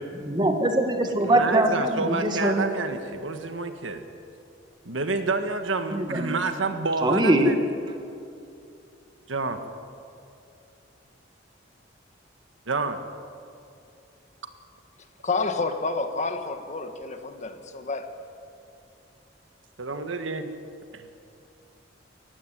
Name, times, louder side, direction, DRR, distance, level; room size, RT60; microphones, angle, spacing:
voice 1, 0.2-2.7 5.9-6.4 7.0-7.5, right 1 dB, 25° right, 5 dB, 1.7 m, -22 dB
voice 2, 1.2-4.0 4.8-7.6 9.3-9.6 12.7-13.0 19.8-20.5 20.9-21.1, right 3 dB, 90° right, 7 dB, 1.6 m, -28 dB
voice 3, 15.2-18.1, left 3 dB, 40° left, 7 dB, 1.4 m, -29 dB
19.0 x 15.5 x 9.3 m, 2.5 s
head